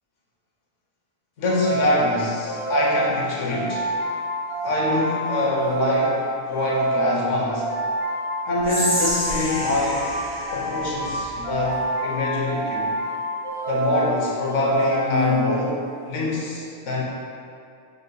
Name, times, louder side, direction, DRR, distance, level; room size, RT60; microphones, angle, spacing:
voice 1, 1.4-3.9 4.6-7.7 8.4-10.1 10.5-12.9 13.7-15.8 16.1-17.0, left 2 dB, 80° left, -4 dB, 1.1 m, -25 dB
sound 1, 1.5-16.0, equal, 55° left, 0.9 m, -27 dB
Whispering, 8.6-11.8, equal, 15° right, 1.3 m, -30 dB
6.6 x 2.5 x 2.2 m, 2.5 s
omnidirectional pair, 1.3 m